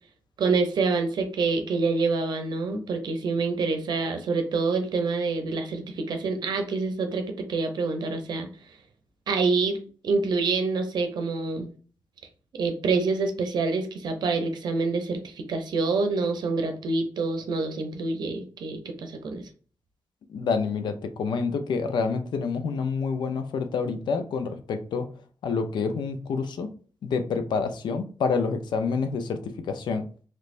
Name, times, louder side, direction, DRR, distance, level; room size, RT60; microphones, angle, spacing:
voice 1, 0.4-8.5 9.3-9.8 10.0-11.7 12.5-19.5, right 4 dB, 75° right, 0.6 m, -26 dB
voice 2, 20.3-25.1 25.4-26.7 27.0-30.0, left 5 dB, 85° left, 0.5 m, -28 dB
3.2 x 3.2 x 2.5 m
cardioid pair, 80°, 7 cm